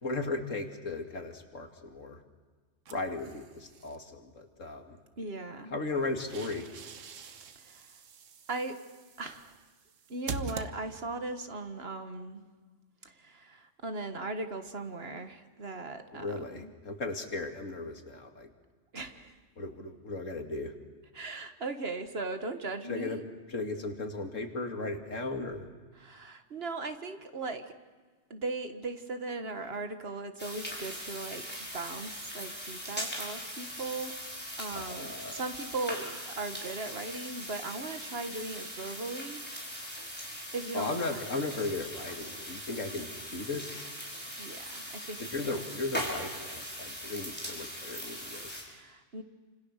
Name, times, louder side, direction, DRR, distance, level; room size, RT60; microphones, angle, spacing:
voice 1, 0.0-2.2 2.9-5.0 5.7-6.7 16.1-18.5 19.6-20.7 22.9-23.2 23.5-25.7 34.7-35.4 40.7-43.9 45.2-48.7, left 3 dB, 90° left, 5 dB, 2.6 m, -36 dB
sound 1, 2.9-4.0 5.9-11.3, right 4 dB, 85° right, 1.5 m, -44 dB
voice 2, 5.2-5.7 7.6-8.0 8.5-8.8 9.2-9.6 10.1-12.5 13.0-16.7 18.9-19.4 21.1-23.2 26.0-27.7 28.3-31.4 31.7-34.2 34.6-39.9 40.5-41.5 44.4-45.2 45.4-45.6 48.7-49.2, right 3 dB, 55° right, 8 dB, 1.7 m, -38 dB
sound 2, 30.4-48.6, equal, 10° left, 5.5 m, -40 dB
29.0 x 26.5 x 6.6 m, 1.4 s
omnidirectional pair, 1.3 m